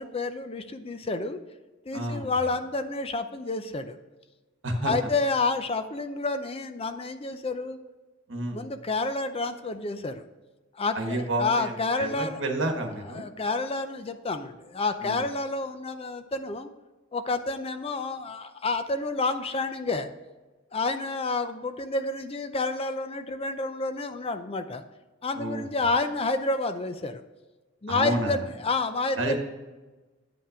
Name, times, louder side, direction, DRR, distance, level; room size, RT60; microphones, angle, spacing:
voice 1, 0.0-1.4 1.9-4.0 4.8-7.8 8.5-10.2 10.7-12.4 13.1-16.7 17.1-20.1 20.7-24.8 25.2-27.2 27.8-29.4, left 3 dB, 30° left, 9 dB, 0.5 m, -29 dB
voice 2, 1.9-2.5 4.6-5.1 8.3-8.6 10.9-13.3 15.0-15.2 25.3-25.7 27.9-28.4 29.1-29.4, right 1 dB, 65° right, 4 dB, 1.4 m, -30 dB
9.1 x 5.6 x 4.9 m, 1.2 s
head